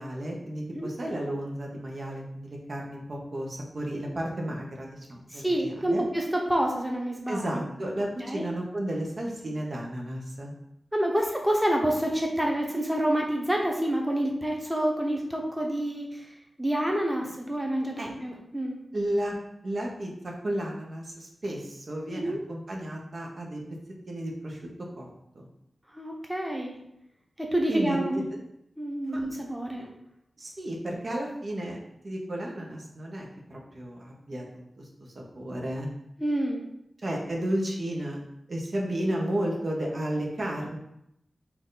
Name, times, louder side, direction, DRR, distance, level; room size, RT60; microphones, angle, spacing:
voice 1, 0.0-6.0 7.3-10.6 18.0-18.1 18.9-19.3 19.6-23.6 24.1-24.6 25.0-25.1 25.3-25.5 27.7-28.2 29.1-29.2 29.8-30.0 30.4-31.8 32.0-34.4 34.8-35.9 37.0-38.2 38.5-40.8, right 1 dB, 55° right, -1 dB, 1.0 m, -33 dB
voice 2, 5.3-7.6 8.2-8.4 10.9-16.3 16.6-18.8 22.1-22.4 25.9-26.7 27.4-28.2 28.8-29.9 36.2-36.6, right 1 dB, 10° right, 0 dB, 1.0 m, -28 dB
4.4 x 2.6 x 3.9 m, 0.79 s
wide cardioid pair, 70°, 0 cm